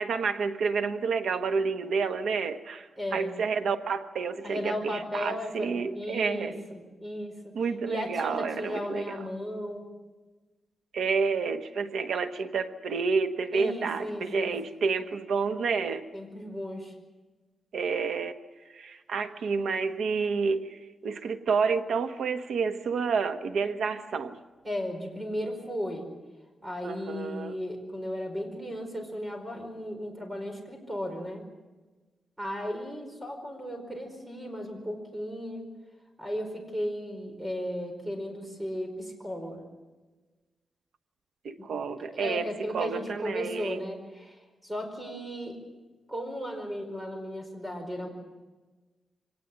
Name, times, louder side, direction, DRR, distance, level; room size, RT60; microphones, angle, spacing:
voice 1, 0.0-6.6 7.5-9.3 10.9-16.1 17.7-18.3 18.7-24.4 26.8-27.6 41.4-43.8, right 5 dB, 85° right, 7 dB, 1.3 m, -29 dB
voice 2, 3.0-3.4 4.4-7.5 7.8-9.9 13.5-14.5 16.1-16.9 24.6-26.0 26.6-31.4 32.4-35.7 36.2-39.7 41.6-41.7 42.1-45.6 46.1-48.1, equal, 10° right, 4 dB, 5.0 m, -35 dB
24.5 x 18.5 x 7.5 m, 1.2 s
wide cardioid pair, 150°, 0 cm